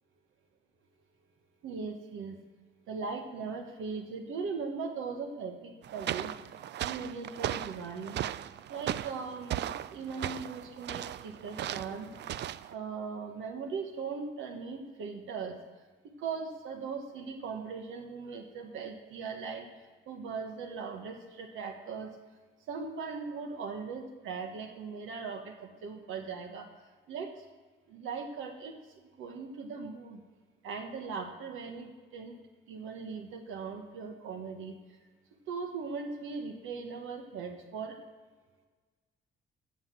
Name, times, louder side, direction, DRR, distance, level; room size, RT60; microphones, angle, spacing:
voice 1, 1.6-2.4 2.9-6.4 6.8-8.2 8.7-12.1 12.7-15.6 16.2-19.7 20.1-22.1 22.7-26.7 27.1-27.3 27.9-28.7 29.2-30.2 30.6-32.4 32.7-34.8 35.5-38.0, right 5 dB, 85° right, 3 dB, 1.4 m, -39 dB
sound 1, 5.8-12.7, right 11 dB, 60° right, 0.4 m, -37 dB
16.0 x 6.5 x 6.3 m, 1.4 s
cardioid pair, 90°, 20 cm